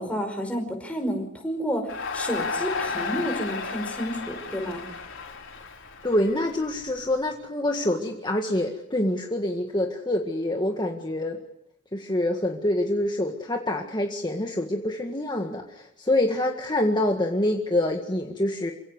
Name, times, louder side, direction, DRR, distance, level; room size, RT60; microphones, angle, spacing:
voice 1, 0.0-4.8, equal, 5° left, 3 dB, 5.1 m, -30 dB
Crowd, 1.9-7.1, left 4 dB, 70° left, 4.7 m, -33 dB
voice 2, 6.0-11.4 11.9-18.7, left 1 dB, 20° left, 2 dB, 1.9 m, -26 dB
28.0 x 17.0 x 9.5 m, 0.78 s
head